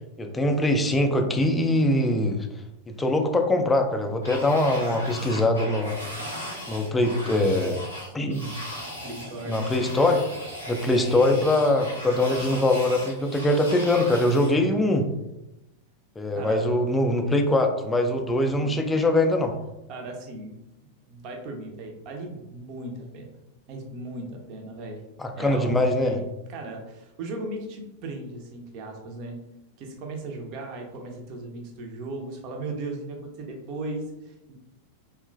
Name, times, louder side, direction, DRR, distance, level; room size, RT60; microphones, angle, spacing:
voice 1, 0.2-2.5 2.9-5.9 6.7-7.8 8.1-8.6 9.5-10.2 10.7-15.0 16.2-19.5 25.2-26.2, left 1 dB, 10° left, 4 dB, 0.3 m, -22 dB
sound 1, 4.2-14.5, equal, 85° right, 0.9 m, -37 dB
voice 2, 9.0-9.7 16.3-16.8 18.4-18.7 19.9-20.6 21.1-23.4 23.7-25.0 25.4-29.4 29.8-34.6, right 2 dB, 40° right, 2 dB, 0.5 m, -37 dB
2.9 x 2.2 x 2.3 m, 0.93 s
figure-of-eight pair, 90°, 0 cm